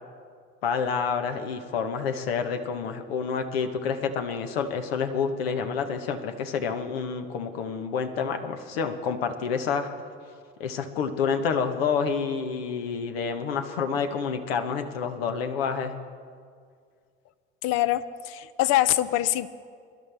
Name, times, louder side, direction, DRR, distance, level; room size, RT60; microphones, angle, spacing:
voice 1, 0.6-9.9 10.6-15.9, left 6 dB, 80° left, 6 dB, 1.1 m, -28 dB
voice 2, 17.6-19.5, left 14 dB, 60° left, 14 dB, 0.7 m, -24 dB
22.5 x 11.5 x 3.4 m, 2.1 s
hypercardioid pair, 70°, 30 cm